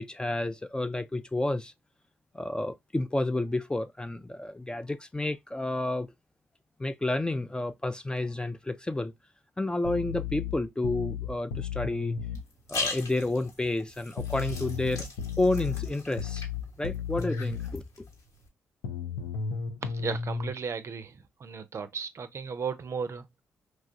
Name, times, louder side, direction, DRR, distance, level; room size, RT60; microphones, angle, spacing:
voice 1, 0.0-1.7 2.3-6.1 6.8-9.1 9.6-12.2 12.7-15.1 15.4-16.4 16.8-18.1, left 2 dB, 15° left, 0.3 m, -30 dB
sound 1, 9.8-12.4 14.2-17.8 18.8-20.5, left 6 dB, 90° left, 0.4 m, -34 dB
sound 2, 12.3-18.5, left 3 dB, 65° left, 1.1 m, -40 dB
voice 2, 19.8-23.4, right 6 dB, 50° right, 0.5 m, -35 dB
3.0 x 2.3 x 2.5 m
hypercardioid pair, 45°, 6 cm